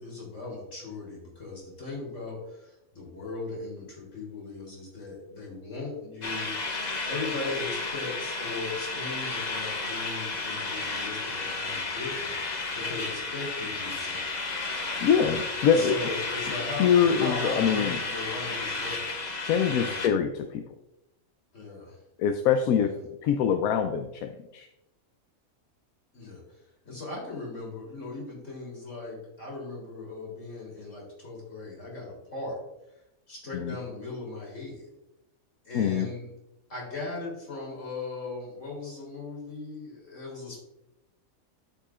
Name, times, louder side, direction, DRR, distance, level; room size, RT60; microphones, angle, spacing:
voice 1, 0.0-6.6 7.1-14.4 15.0-15.3 15.7-20.0 21.5-22.0 22.8-22.9 26.1-26.4 26.9-32.6 33.3-34.9 35.6-36.3 36.7-40.6, left 3 dB, 60° left, -3 dB, 3.5 m, -38 dB
sound 1, 6.2-20.1, left 3 dB, 40° left, 0.7 m, -32 dB
voice 2, 15.0-16.0 16.8-18.0 19.4-20.6 22.2-22.9 23.2-24.7 33.5-33.7 35.7-36.1, left 7 dB, 85° left, 7 dB, 1.0 m, -24 dB
12.5 x 5.6 x 2.4 m, 0.90 s
omnidirectional pair, 1.5 m